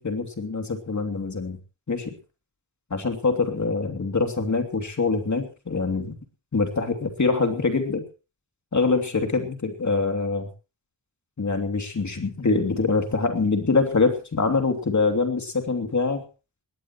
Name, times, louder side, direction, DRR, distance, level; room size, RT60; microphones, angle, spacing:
voice 1, 0.0-1.6 1.9-2.1 2.9-6.2 6.5-8.0 8.7-10.5 11.4-16.2, left 4 dB, 40° left, 5 dB, 3.0 m, -24 dB
20.5 x 18.5 x 3.1 m, 0.33 s
wide cardioid pair, 115°, 42 cm